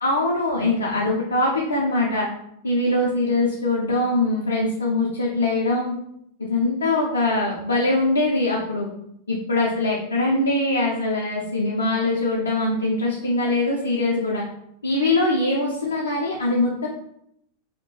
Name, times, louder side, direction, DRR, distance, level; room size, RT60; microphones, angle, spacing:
voice 1, 0.0-2.3 2.6-5.9 6.4-8.9 9.3-14.4 14.8-16.9, left 2 dB, 75° left, -3 dB, 0.4 m, -22 dB
2.7 x 2.1 x 2.9 m, 0.75 s
figure-of-eight pair, 90°, 0 cm